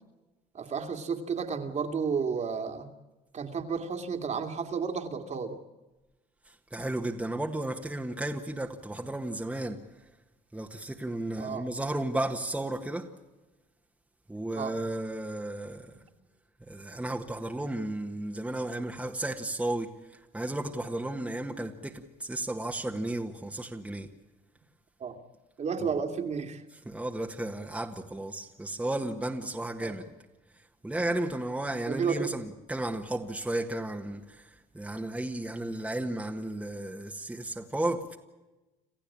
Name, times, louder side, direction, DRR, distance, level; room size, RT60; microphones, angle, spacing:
voice 1, 0.5-2.9 3.3-5.6 11.4-11.7 14.5-14.7 25.0-25.1 25.6-26.6 29.8-29.9 31.9-32.3, right 6 dB, 45° right, 5 dB, 2.5 m, -32 dB
voice 2, 6.7-9.8 10.5-13.1 14.3-15.9 16.7-19.9 20.3-24.1 25.8-25.9 26.7-30.1 30.8-34.5 34.7-38.2, right 1 dB, 5° right, 2 dB, 1.7 m, -33 dB
28.0 x 14.5 x 8.7 m, 1.1 s
cardioid pair, 110°, 17 cm